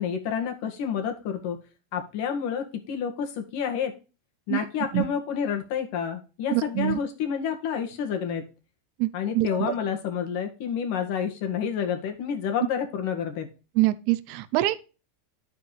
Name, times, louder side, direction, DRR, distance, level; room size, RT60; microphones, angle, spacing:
voice 1, 0.0-1.6 1.9-3.9 4.5-8.5 9.1-13.5, left 7 dB, 60° left, 1.8 m, -29 dB
voice 2, 6.5-7.0 9.0-9.1 9.3-9.7 13.8-14.7, right 16 dB, 50° right, 0.6 m, -24 dB
13.0 x 4.6 x 3.2 m
supercardioid pair, 140°, 0 cm